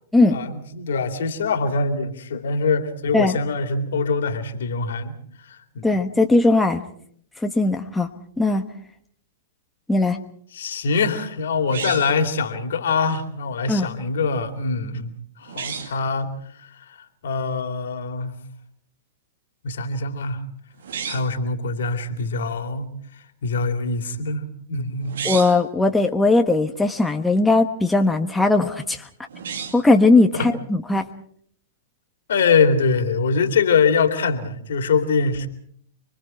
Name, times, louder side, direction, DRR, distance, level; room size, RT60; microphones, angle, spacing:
voice 1, 0.3-5.1 5.4-5.9 10.5-15.1 15.4-16.3 17.2-18.3 19.6-20.4 21.1-22.9 23.4-25.2 30.3-30.5 32.3-35.5, left 4 dB, 70° left, 7 dB, 2.8 m, -23 dB
voice 2, 5.8-6.8 7.4-8.1 8.4-8.6 9.9-10.2 13.7-13.9 25.2-29.0 29.7-31.1, left 2 dB, 5° left, 4 dB, 1.3 m, -18 dB
sound 1, 11.7-12.3 15.4-16.0 20.8-21.4 25.0-25.7 29.3-29.9, right 6 dB, 70° right, 2.0 m, -32 dB
30.0 x 22.5 x 4.4 m, 0.62 s
hypercardioid pair, 110°, 0 cm